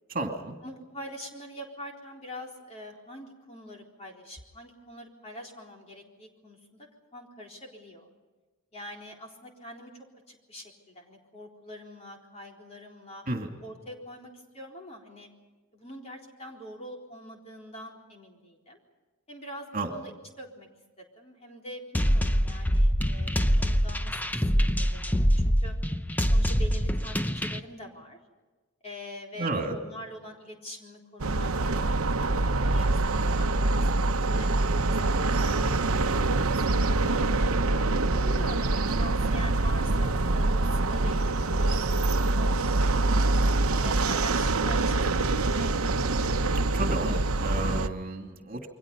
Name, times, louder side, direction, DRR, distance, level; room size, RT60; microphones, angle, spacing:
voice 1, 0.1-0.6 13.3-13.5 19.7-19.9 29.4-29.8 46.5-48.7, right 2 dB, 40° right, 3 dB, 2.7 m, -32 dB
voice 2, 0.6-8.1 8.7-13.2 13.6-15.3 15.7-18.8 19.3-20.1 20.4-20.7 21.0-25.8 26.3-28.2 28.8-32.3 32.6-34.5 34.8-37.6 38.2-43.3 43.7-46.2, equal, 30° left, 0 dB, 4.0 m, -45 dB
sound 1, 21.9-27.6, equal, 10° left, 0.7 m, -24 dB
sound 2, 31.2-47.9, right 2 dB, 80° right, 1.0 m, -25 dB
28.5 x 23.5 x 5.4 m, 1.3 s
head